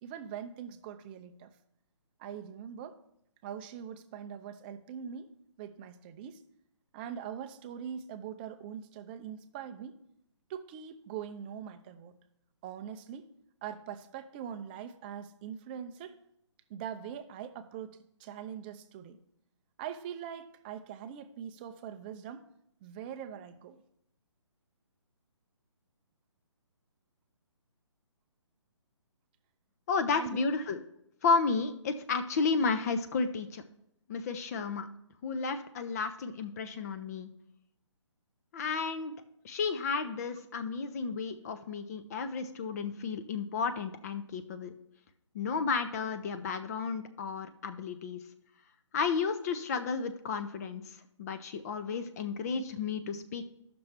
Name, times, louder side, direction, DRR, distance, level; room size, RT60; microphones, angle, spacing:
voice 1, 0.0-1.5 2.2-2.9 3.4-5.3 5.6-6.4 6.9-10.0 10.5-12.2 12.6-13.3 13.6-16.1 16.7-19.2 19.8-22.5 22.8-23.8 30.1-30.5, right 8 dB, 20° right, 9 dB, 0.5 m, -42 dB
voice 2, 29.9-30.8 31.2-33.6 34.1-34.9 35.2-37.3 38.5-39.1 39.4-44.7 45.3-48.2 48.9-53.4, left 5 dB, 30° left, 9 dB, 0.6 m, -32 dB
14.0 x 6.0 x 3.2 m, 0.77 s
figure-of-eight pair, 145°, 16 cm